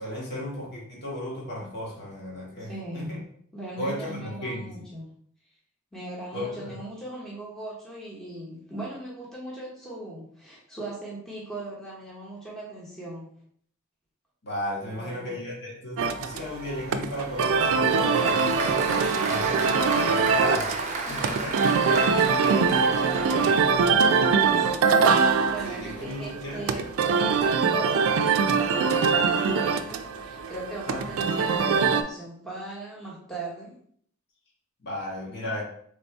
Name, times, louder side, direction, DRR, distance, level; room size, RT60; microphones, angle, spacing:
voice 1, 0.0-3.2 3.8-4.8 6.3-6.7 14.4-20.7 21.1-21.5 25.6-26.8 30.9-31.0 34.8-35.6, left 1 dB, 55° left, -4 dB, 1.5 m, -34 dB
voice 2, 2.6-3.2 3.5-5.1 5.9-13.3 14.8-15.3 19.1-20.1 21.1-24.8 25.5-26.8 27.4-33.8, right 2 dB, ahead, -5 dB, 0.9 m, -39 dB
sound 1, 16.0-32.0, right 5 dB, 80° right, 0.4 m, -23 dB
Applause, 17.6-24.0, right 3 dB, 35° right, 0.7 m, -33 dB
3.5 x 2.7 x 4.4 m, 0.63 s
head